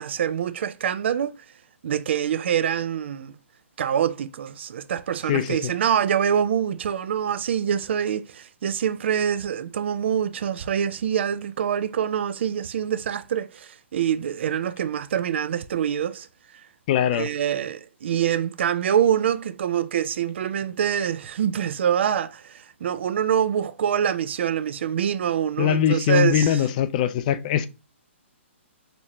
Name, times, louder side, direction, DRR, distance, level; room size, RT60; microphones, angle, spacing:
voice 1, 0.0-1.3 1.8-3.3 3.8-16.3 17.1-26.6, right 9 dB, 60° right, 0.4 m, -25 dB
voice 2, 5.3-5.7 16.9-17.3 25.6-27.7, left 9 dB, 35° left, 0.3 m, -22 dB
4.4 x 2.7 x 2.9 m
hypercardioid pair, 140°, 7 cm